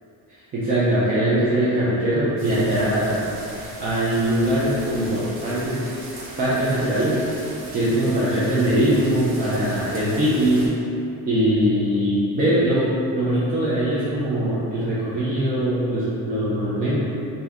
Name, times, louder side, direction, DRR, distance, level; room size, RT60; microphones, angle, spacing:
voice 1, 0.3-3.2 3.8-5.8 6.4-7.2 7.7-10.7 11.3-17.0, right 1 dB, 25° right, -10 dB, 0.3 m, -21 dB
sound 1, 2.4-10.7, right 1 dB, 70° right, 0.9 m, -39 dB
3.2 x 2.6 x 3.5 m, 2.9 s
cardioid pair, 180°, 38 cm